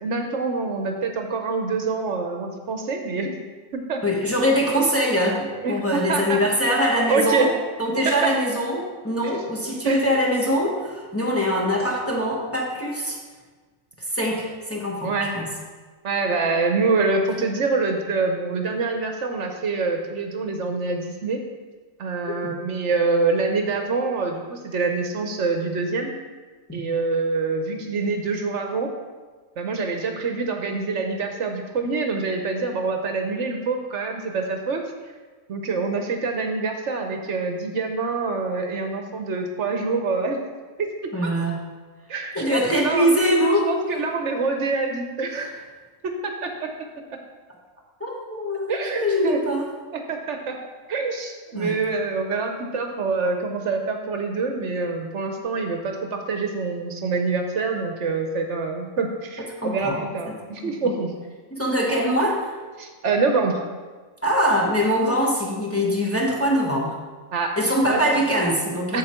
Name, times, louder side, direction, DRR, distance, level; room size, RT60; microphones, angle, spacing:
voice 1, 0.0-3.4 3.7-4.0 5.6-6.4 7.1-7.5 9.8-10.0 15.0-15.4 16.0-21.4 22.0-26.1 26.7-28.9 29.6-34.8 35.5-40.4 40.8-40.9 41.2-41.3 42.1-43.1 43.7-45.5 46.0-46.7 48.7-49.4 49.9-50.6 50.9-61.1 62.8-63.6 67.3-67.6 67.9-68.0 68.9-69.0, right 4 dB, 65° right, 4 dB, 1.1 m, -25 dB
voice 2, 4.0-7.5 7.8-13.2 14.0-15.5 22.4-22.5 26.7-26.8 41.1-41.6 42.3-43.7 45.4-45.5 48.0-49.7 51.5-51.8 59.4-60.0 60.6-60.9 61.5-62.5 64.2-67.0 67.6-69.0, equal, 10° left, -3 dB, 1.1 m, -23 dB
7.9 x 7.3 x 4.4 m, 1.4 s
omnidirectional pair, 1.4 m